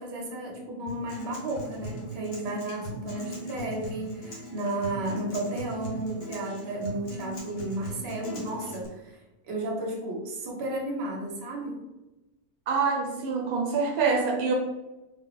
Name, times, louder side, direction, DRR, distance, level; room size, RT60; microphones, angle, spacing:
voice 1, 0.0-11.8, right 1 dB, 50° right, -1 dB, 0.9 m, -33 dB
Acoustic guitar, 0.9-8.9, right 1 dB, 40° left, 0.8 m, -39 dB
voice 2, 12.7-14.5, right 4 dB, 80° right, 1 dB, 1.0 m, -25 dB
2.8 x 2.5 x 3.7 m, 1.0 s
omnidirectional pair, 1.6 m